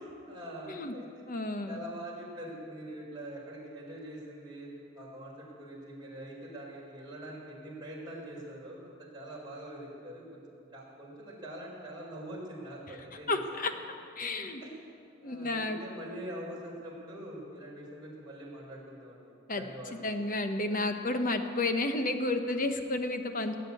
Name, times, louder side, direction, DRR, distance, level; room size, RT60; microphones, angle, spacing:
voice 1, 0.2-1.2 1.6-10.4 10.7-13.6 14.6-14.7 15.2-20.2, right 1 dB, 20° right, -5 dB, 4.7 m, -44 dB
voice 2, 1.3-1.8 13.3-13.7 14.2-14.6 15.2-15.8 19.5-19.6 20.0-23.5, left 2 dB, 40° left, 6 dB, 1.1 m, -31 dB
18.5 x 9.2 x 8.5 m, 2.5 s
head